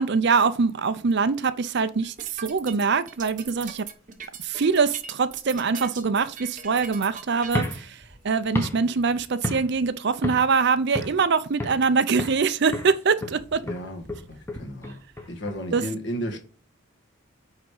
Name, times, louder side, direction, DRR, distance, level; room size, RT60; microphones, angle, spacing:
voice 1, 0.0-2.1 2.4-3.8 4.4-8.0 8.2-13.6 15.7-15.8, right 5 dB, 55° right, 0.5 m, -23 dB
sound 1, 2.0-7.8, right 7 dB, 35° right, 0.9 m, -40 dB
sound 2, 7.4-9.9 10.2-10.6 10.9-11.9 12.2-12.5 12.7-15.8, left 1 dB, 10° left, 0.9 m, -33 dB
voice 2, 13.6-15.0 15.3-16.4, equal, 55° left, 1.7 m, -33 dB
9.1 x 3.6 x 4.8 m
head